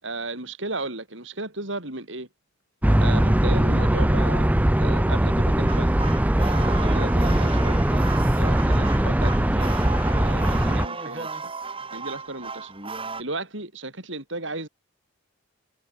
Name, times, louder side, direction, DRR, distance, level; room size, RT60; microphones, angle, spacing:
voice 1, 0.0-2.3 3.0-6.0 6.4-7.8 8.4-9.7 10.1-11.5 11.9-12.7 13.2-14.7, right 2 dB, 65° right, 6.4 m, -35 dB
sound 1, 2.8-10.9, right 1 dB, 10° right, 0.5 m, -20 dB
sound 2, 5.7-13.2, right 4 dB, 25° right, 6.6 m, -35 dB
head